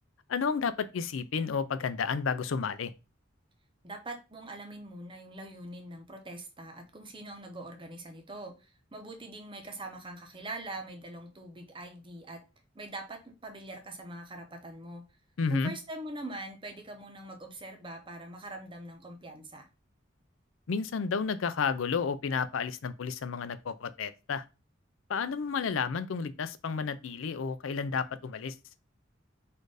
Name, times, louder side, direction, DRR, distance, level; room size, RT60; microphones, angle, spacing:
voice 1, 0.3-2.9 15.4-15.7 20.7-24.4 25.1-28.6, left 5 dB, 75° left, 0.4 m, -31 dB
voice 2, 3.8-12.4 12.7-15.0 15.5-19.7, right 1 dB, 25° right, 0.8 m, -43 dB
4.3 x 2.6 x 4.8 m
head